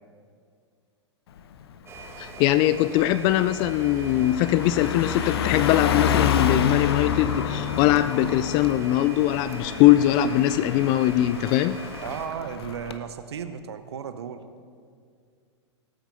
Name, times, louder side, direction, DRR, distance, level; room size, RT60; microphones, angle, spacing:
Car passing by, 1.4-1.6 2.0-13.0, left 8 dB, 55° left, 0.8 m, -29 dB
sound 1, 1.9-12.3, right 3 dB, 15° right, 1.3 m, -42 dB
voice 1, 2.2-11.8, left 13 dB, 30° left, 14 dB, 0.3 m, -21 dB
voice 2, 12.0-14.4, right 8 dB, 60° right, 10 dB, 0.7 m, -34 dB
19.0 x 8.8 x 4.0 m, 2.2 s
figure-of-eight pair, 105°, 15 cm